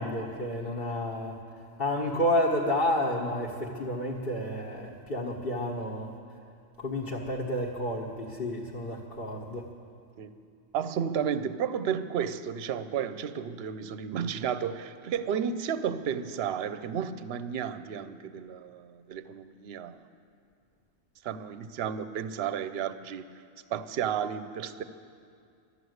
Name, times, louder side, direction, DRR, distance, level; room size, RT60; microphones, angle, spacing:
voice 1, 0.0-1.4 1.8-6.1 6.8-9.7, left 1 dB, 45° left, -5 dB, 1.5 m, -30 dB
voice 2, 10.7-20.1 21.2-23.3 23.7-24.8, right 8 dB, 60° right, 12 dB, 0.8 m, -32 dB
13.0 x 12.0 x 8.0 m, 2.3 s
omnidirectional pair, 1.3 m